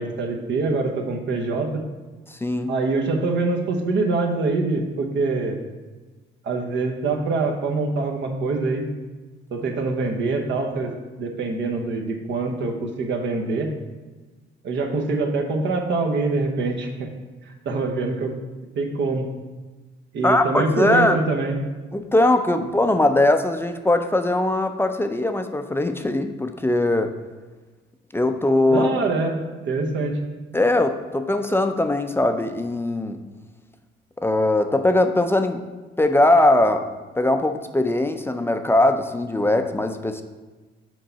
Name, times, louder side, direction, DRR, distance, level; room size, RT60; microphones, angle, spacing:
voice 1, 0.0-1.8 2.7-5.6 6.4-8.8 9.5-10.9 11.2-13.7 14.6-17.1 17.6-18.3 18.8-19.3 20.1-21.6 28.7-30.2, right 3 dB, 70° right, 2 dB, 1.0 m, -24 dB
voice 2, 2.3-2.7 20.2-21.2 21.9-27.1 28.1-28.9 30.5-33.2 34.2-35.6 36.0-36.9 37.2-40.2, left 1 dB, 10° left, 7 dB, 0.4 m, -20 dB
6.4 x 4.5 x 4.0 m, 1.3 s
cardioid pair, 90°, 20 cm